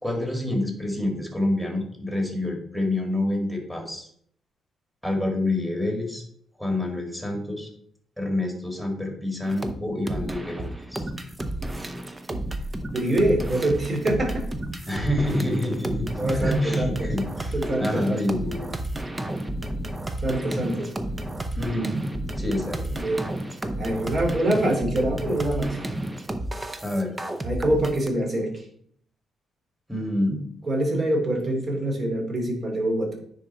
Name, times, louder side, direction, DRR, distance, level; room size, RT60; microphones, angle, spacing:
voice 1, 0.0-4.1 5.0-6.2 6.6-7.7 8.2-11.0 14.8-18.7 21.5-22.0 22.4-22.9 26.8-27.1 29.9-30.4, left 1 dB, ahead, 2 dB, 2.1 m, -27 dB
sound 1, 9.4-9.7 10.1-28.1, right 1 dB, 20° right, 0.8 m, -31 dB
voice 2, 12.9-14.5 16.2-17.1 17.5-18.2 20.2-20.9 22.9-23.2 23.8-25.8 27.4-28.6 30.6-33.1, right 1 dB, 40° right, 1 dB, 2.6 m, -25 dB
9.7 x 3.9 x 4.5 m, 0.63 s
cardioid pair, 105°, 0 cm